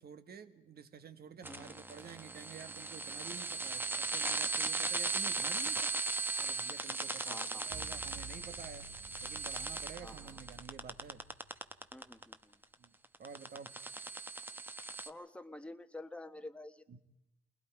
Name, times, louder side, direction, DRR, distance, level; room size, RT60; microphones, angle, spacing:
voice 1, 0.0-6.0 6.4-8.9 9.2-11.2 12.8-12.9 13.2-13.7 16.9-17.0, right 6 dB, 50° right, 10 dB, 1.4 m, -50 dB
sound 1, 1.4-12.3 12.6-15.1, right 3 dB, 10° right, 0.9 m, -38 dB
voice 2, 7.2-7.7 10.0-10.4 11.9-12.6 15.1-17.0, left 1 dB, 5° left, 8 dB, 1.2 m, -49 dB
sound 2, 7.7-12.2, right 4 dB, 75° right, 2.4 m, -53 dB
29.0 x 20.5 x 4.7 m, 0.88 s
cardioid pair, 90°, 20 cm